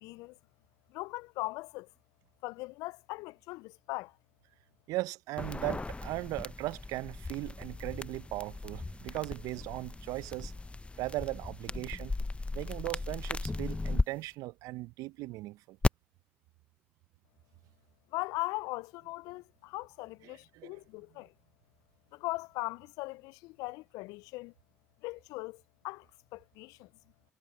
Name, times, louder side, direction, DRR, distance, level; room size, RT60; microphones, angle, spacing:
voice 1, 0.0-0.4 0.9-1.9 2.4-4.1 18.1-21.3 22.1-24.5 25.0-26.1 26.3-26.9, left 22 dB, 70° left, 0.4 m, -39 dB
voice 2, 4.9-10.5 11.0-12.1 12.5-15.8 20.2-20.8, right 19 dB, 70° right, 0.7 m, -38 dB
sound 1, 5.4-14.0 15.8-15.9, left 3 dB, 20° left, 0.8 m, -36 dB
hypercardioid pair, 55°, 6 cm